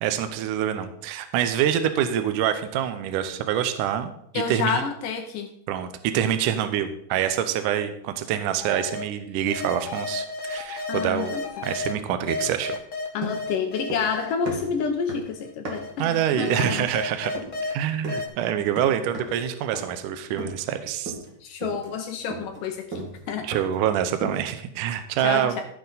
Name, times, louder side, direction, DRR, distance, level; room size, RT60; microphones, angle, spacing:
voice 1, 0.0-4.8 5.7-12.8 16.0-17.3 17.6-21.2 23.4-25.6, right 10 dB, 75° right, 9 dB, 1.9 m, -26 dB
voice 2, 4.3-5.5 10.9-11.4 13.1-16.9 21.4-23.5 25.2-25.6, left 6 dB, 75° left, 5 dB, 2.1 m, -29 dB
sound 1, 8.6-9.0 9.5-11.9 12.3-14.6 15.4-17.7 18.1-18.3, left 3 dB, 55° left, 0.8 m, -33 dB
sound 2, 13.2-14.2 14.4-16.0 16.6-16.9 17.3-17.6 18.0-18.3 18.8-19.4 19.7-20.0 20.4-20.8 21.1-21.3 21.6-23.9 24.2-24.6, right 2 dB, 35° right, 2.1 m, -36 dB
14.5 x 6.9 x 4.1 m, 0.73 s
omnidirectional pair, 4.5 m